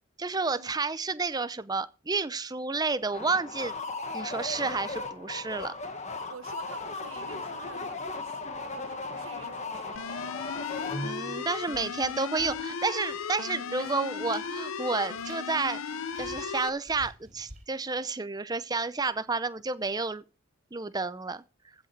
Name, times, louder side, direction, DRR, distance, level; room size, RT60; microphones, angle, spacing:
voice 1, 0.2-3.7 4.1-5.7 11.0-15.8 16.2-20.2 20.7-21.4, right 4 dB, 20° right, 0.6 m, -30 dB
sound 1, 3.1-11.4, left 3 dB, 35° left, 1.5 m, -37 dB
voice 2, 6.3-10.1 13.8-13.9, right 4 dB, 80° right, 1.3 m, -49 dB
sound 2, 9.9-16.7, left 6 dB, 80° left, 0.6 m, -36 dB
sound 3, 11.7-13.3 13.6-14.6 14.9-17.6, right 2 dB, 35° right, 4.8 m, -52 dB
15.0 x 7.4 x 4.7 m
head